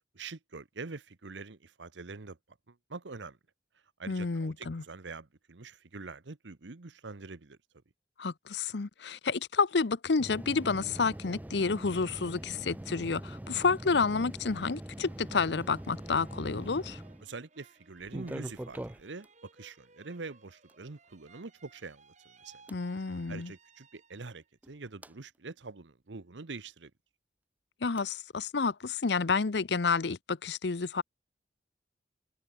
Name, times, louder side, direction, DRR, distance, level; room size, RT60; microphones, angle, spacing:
voice 1, 0.1-2.4 2.7-3.4 4.0-7.6 17.2-22.6 23.3-26.9, right 3 dB, 80° right, 1.0 m, -45 dB
voice 2, 4.1-4.8 8.2-17.0 22.7-23.5 27.8-31.0, left 4 dB, 70° left, 0.7 m, -30 dB
sound 1, 10.2-17.3 18.0-19.3 20.7-20.8 22.7-22.8 24.6-25.1 28.0-28.1, right 1 dB, 10° right, 0.4 m, -43 dB
sound 2, 14.7-24.5 25.0-25.6, right 4 dB, 40° right, 5.3 m, -61 dB
open air
head